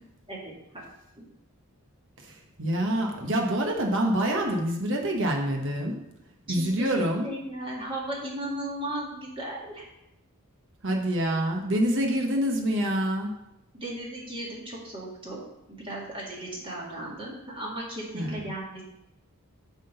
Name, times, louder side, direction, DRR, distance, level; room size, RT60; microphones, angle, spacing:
voice 1, 0.3-0.8 1.2-1.3 6.5-9.9 13.7-15.4 15.7-18.8, right 1 dB, 25° right, -4 dB, 2.1 m, -36 dB
voice 2, 2.2-6.0 6.5-7.3 10.8-13.3 18.1-18.4, right 1 dB, 60° right, 1 dB, 1.2 m, -26 dB
9.3 x 3.8 x 6.7 m, 0.85 s
head